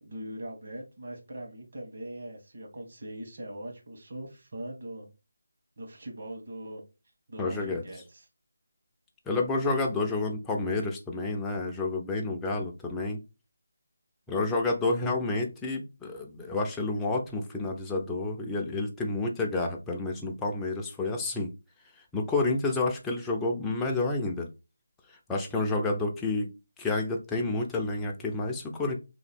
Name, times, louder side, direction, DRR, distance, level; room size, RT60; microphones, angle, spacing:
voice 1, 0.0-5.1 5.8-6.8 7.3-8.3, right 1 dB, 50° right, 1 dB, 1.5 m, -41 dB
voice 2, 7.4-7.8 9.3-13.2 14.3-21.5 22.1-24.5 25.3-26.5 26.8-29.0, left 3 dB, 5° left, 0 dB, 0.5 m, -29 dB
3.0 x 2.6 x 4.2 m, 0.28 s
figure-of-eight pair, 165°, 0 cm